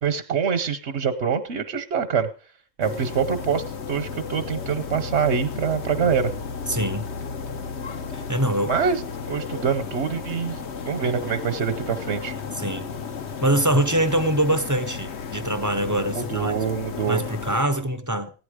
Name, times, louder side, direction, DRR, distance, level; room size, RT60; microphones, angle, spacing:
voice 1, 0.0-2.3 2.8-6.3 8.7-9.0 9.3-10.6 10.8-12.3 16.1-17.2, right 7 dB, 60° right, 1.2 m, -25 dB
sound 1, 2.8-17.6, left 5 dB, 60° left, 1.2 m, -33 dB
voice 2, 6.7-7.1 8.1-8.7 12.6-12.9 13.4-16.5 17.1-18.3, right 1 dB, 20° right, 0.7 m, -24 dB
15.5 x 9.9 x 5.0 m
omnidirectional pair, 1.3 m